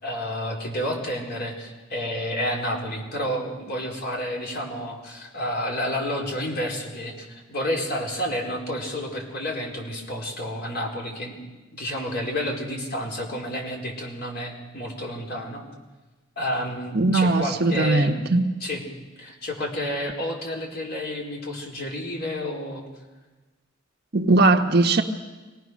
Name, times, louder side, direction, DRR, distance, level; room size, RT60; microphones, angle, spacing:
voice 1, 0.0-11.4 11.7-15.6 16.4-18.3 18.6-18.8 19.2-22.8, equal, 55° left, -1 dB, 4.4 m, -30 dB
voice 2, 16.9-18.5 24.1-25.0, right 2 dB, 55° right, 5 dB, 1.2 m, -19 dB
25.5 x 18.5 x 6.4 m, 1.2 s
head